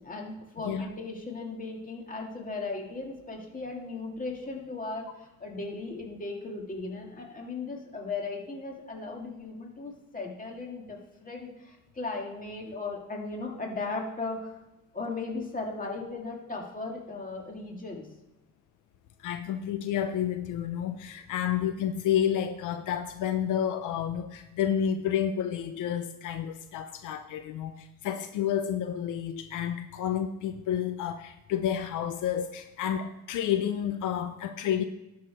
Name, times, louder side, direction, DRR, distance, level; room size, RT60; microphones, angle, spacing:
voice 1, 0.0-14.6 14.9-18.1, left 3 dB, 25° left, 0 dB, 2.2 m, -37 dB
voice 2, 19.2-34.8, left 9 dB, 85° left, 8 dB, 0.6 m, -30 dB
12.0 x 4.8 x 5.2 m, 0.99 s
cardioid pair, 90°, 30 cm